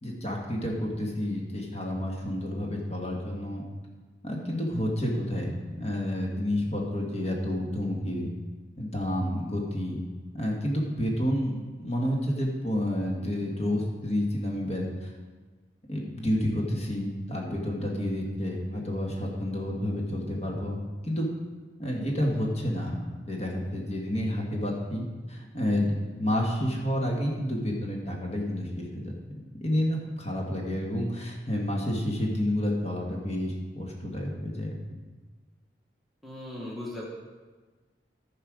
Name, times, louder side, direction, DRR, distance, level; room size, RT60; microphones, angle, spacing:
voice 1, 0.0-3.6 4.2-8.3 8.8-10.0 10.3-15.1 15.9-21.3 21.8-29.0 29.6-35.0, left 1 dB, 40° left, -1 dB, 1.7 m, -30 dB
voice 2, 36.2-37.0, left 1 dB, ahead, -5 dB, 1.5 m, -38 dB
14.5 x 5.5 x 5.0 m, 1.4 s
head